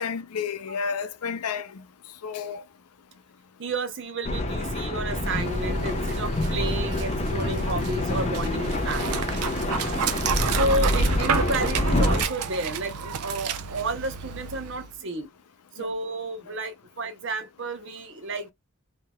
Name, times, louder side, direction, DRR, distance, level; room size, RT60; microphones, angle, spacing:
voice 1, 0.0-1.7 2.2-2.6, left 6 dB, 85° left, 0.5 m, -30 dB
voice 2, 3.6-9.3 10.5-15.3 15.7-18.5, right 2 dB, 55° right, 0.7 m, -31 dB
sound 1, 4.2-12.3, left 1 dB, 30° left, 0.5 m, -26 dB
Dog, 5.0-14.9, right 7 dB, 90° right, 0.4 m, -31 dB
3.4 x 2.8 x 2.2 m
head